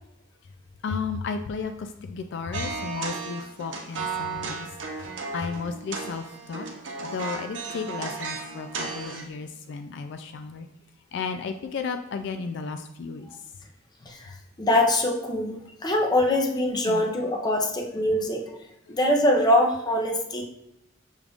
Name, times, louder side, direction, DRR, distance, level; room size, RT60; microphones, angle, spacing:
voice 1, 0.8-4.7 5.0-6.7 7.0-10.7 11.1-13.3 16.9-17.0 18.9-19.0, left 5 dB, 65° left, 7 dB, 0.3 m, -33 dB
sound 1, 2.5-9.3, right 4 dB, 70° right, 0.8 m, -34 dB
voice 2, 14.6-18.5 18.9-20.4, left 1 dB, 20° left, 2 dB, 0.6 m, -23 dB
6.3 x 2.4 x 3.5 m, 0.80 s
head